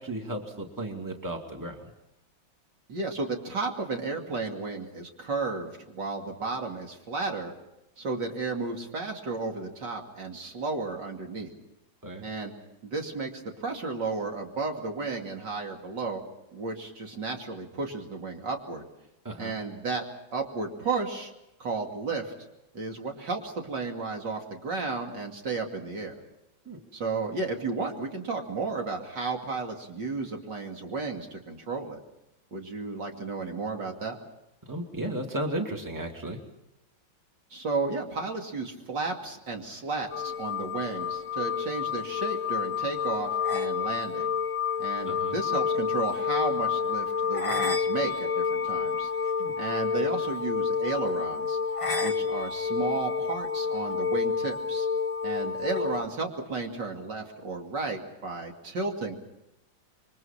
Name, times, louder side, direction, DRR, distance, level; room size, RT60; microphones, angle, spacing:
voice 1, 0.0-1.9 12.0-12.2 19.2-19.6 26.7-26.8 34.7-36.4 45.0-45.4 49.4-49.6, right 1 dB, 10° right, 3 dB, 2.3 m, -34 dB
voice 2, 2.9-7.5 8.0-11.5 12.2-12.5 12.8-16.2 16.5-18.8 19.4-20.0 20.3-21.3 21.6-22.3 22.7-26.1 26.9-32.0 32.5-34.2 37.5-44.3 44.8-49.1 49.6-51.6 52.0-54.9 55.2-59.1, right 3 dB, 60° right, 2 dB, 3.2 m, -33 dB
sound 1, 40.1-56.0, left 6 dB, 20° left, 1.0 m, -29 dB
27.5 x 23.5 x 5.8 m, 0.89 s
omnidirectional pair, 2.1 m